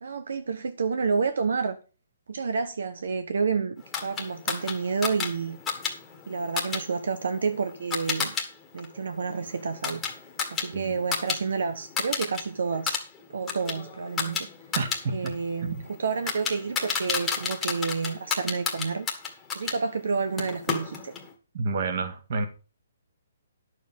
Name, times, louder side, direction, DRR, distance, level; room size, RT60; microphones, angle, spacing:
voice 1, 0.0-1.8 2.3-3.8 4.0-5.6 6.3-8.3 8.7-10.0 10.5-13.0 13.3-14.5 15.1-19.1 19.5-21.1, right 5 dB, 80° right, 1.2 m, -29 dB
sound 1, 3.9-8.5 8.8-11.4 11.7-12.4 12.7-19.8 20.4-21.3, left 6 dB, 10° left, 1.7 m, -32 dB
voice 2, 14.8-15.3 15.6-15.8 21.5-22.5, right 3 dB, 45° right, 2.0 m, -29 dB
11.0 x 7.2 x 5.4 m
hypercardioid pair, 165°, 0 cm